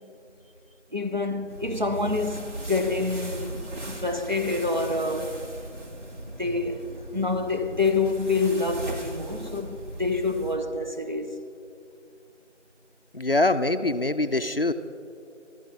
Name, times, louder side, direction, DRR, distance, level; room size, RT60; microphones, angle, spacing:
voice 1, 0.9-5.4 6.4-11.4, left 3 dB, 40° right, 0.7 m, -27 dB
sound 1, 1.5-10.6, right 1 dB, 70° right, 2.3 m, -38 dB
voice 2, 13.1-14.7, left 2 dB, 50° left, 0.5 m, -24 dB
26.0 x 13.5 x 2.5 m
figure-of-eight pair, 170°, 37 cm